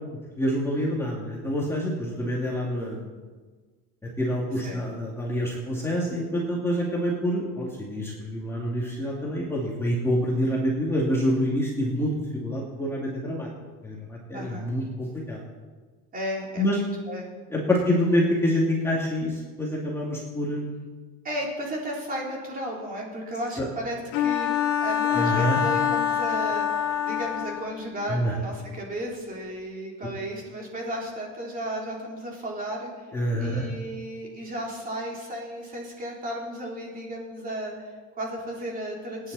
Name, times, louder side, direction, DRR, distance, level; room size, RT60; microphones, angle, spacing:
voice 1, 0.4-3.1 4.2-13.5 13.8-15.4 16.6-16.8 17.5-20.8 23.6-23.7 25.1-25.6 28.1-28.3 33.1-33.7, equal, 5° left, -5 dB, 2.4 m, -27 dB
voice 2, 14.3-14.7 16.1-17.3 17.9-18.0 21.2-33.1 33.4-39.3, right 1 dB, 25° right, -2 dB, 3.5 m, -34 dB
Bowed string instrument, 24.1-27.8, left 9 dB, 75° left, 2.1 m, -25 dB
27.0 x 9.6 x 4.2 m, 1.4 s
cardioid pair, 160°, 35 cm